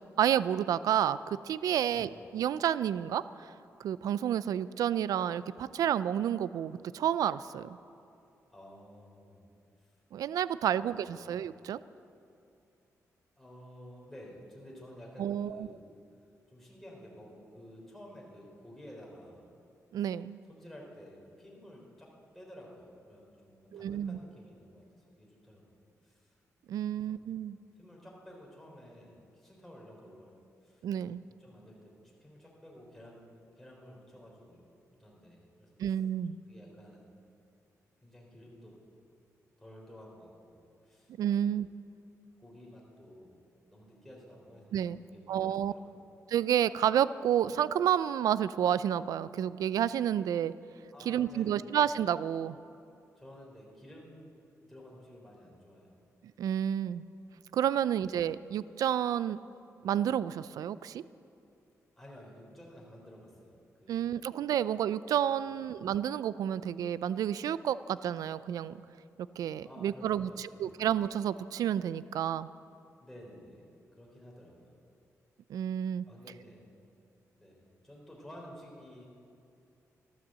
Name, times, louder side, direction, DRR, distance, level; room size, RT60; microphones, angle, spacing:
voice 1, 0.2-3.5 3.8-7.8 10.1-11.8 15.2-15.7 19.9-20.4 23.7-24.2 26.7-27.6 30.8-31.2 35.8-36.3 41.2-41.7 44.7-45.0 45.3-45.7 46.3-50.5 51.1-52.6 56.4-57.0 57.5-59.4 59.8-61.0 63.9-68.8 69.4-70.3 70.6-72.5 75.5-76.1, right 10 dB, 80° right, 16 dB, 0.3 m, -30 dB
voice 2, 1.9-2.2 8.5-9.4 9.8-10.0 10.8-11.4 13.4-15.8 16.5-19.5 20.4-24.8 25.2-25.8 26.0-26.4 26.9-27.3 27.8-30.8 31.4-34.6 35.0-36.0 36.3-37.1 38.0-38.8 39.6-41.1 41.4-41.6 42.4-43.4 43.7-46.0 50.9-51.7 53.2-54.3 54.7-56.0 57.8-57.9 62.0-64.2 65.6-65.7 69.6-70.8 73.0-74.7 76.0-76.6 77.4-79.1, equal, 5° left, -3 dB, 3.7 m, -52 dB
12.5 x 12.5 x 7.5 m, 2.6 s
cardioid pair, 100°, 6 cm